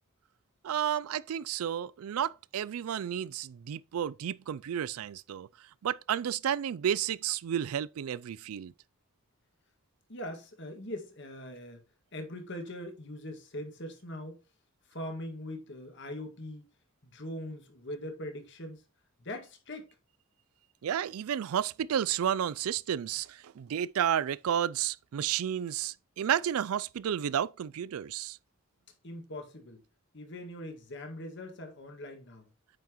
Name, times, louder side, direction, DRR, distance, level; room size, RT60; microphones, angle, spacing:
voice 1, 0.6-5.5 5.8-8.7 20.8-28.4, right 9 dB, 85° right, 0.4 m, -31 dB
voice 2, 10.1-11.8 12.1-14.4 14.9-16.7 17.0-18.8 19.2-19.9 29.0-29.8 30.1-32.5, left 1 dB, 55° left, 1.9 m, -41 dB
8.9 x 5.7 x 3.0 m
head